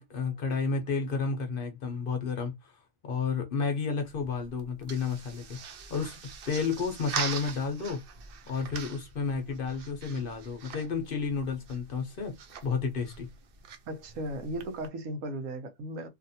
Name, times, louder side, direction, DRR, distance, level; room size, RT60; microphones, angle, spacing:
voice 1, 0.0-2.7 3.0-6.2 6.5-8.0 8.5-12.3 12.6-13.3, left 5 dB, 50° left, 0.8 m, -31 dB
sound 1, 4.0-14.9, right 6 dB, 60° right, 0.7 m, -42 dB
voice 2, 13.9-16.1, right 1 dB, 85° right, 1.2 m, -36 dB
2.7 x 2.5 x 2.7 m
omnidirectional pair, 1.3 m